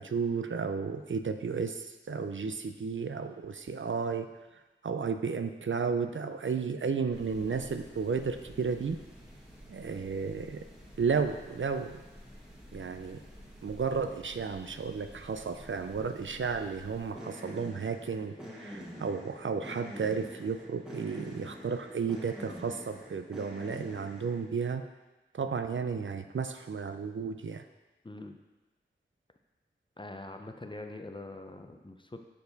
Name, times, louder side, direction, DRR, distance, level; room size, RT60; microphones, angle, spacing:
voice 1, 0.0-4.3 4.8-9.0 9.7-10.6 11.0-12.0 12.7-13.2 13.6-24.8 25.3-27.6, right 5 dB, 70° right, 8 dB, 0.4 m, -33 dB
sound 1, 7.1-24.5, equal, 5° right, 1.5 m, -48 dB
voice 2, 28.0-28.4 30.0-32.2, left 2 dB, 25° left, 5 dB, 0.5 m, -43 dB
6.8 x 4.7 x 4.0 m, 1.1 s
wide cardioid pair, 40°, 20 cm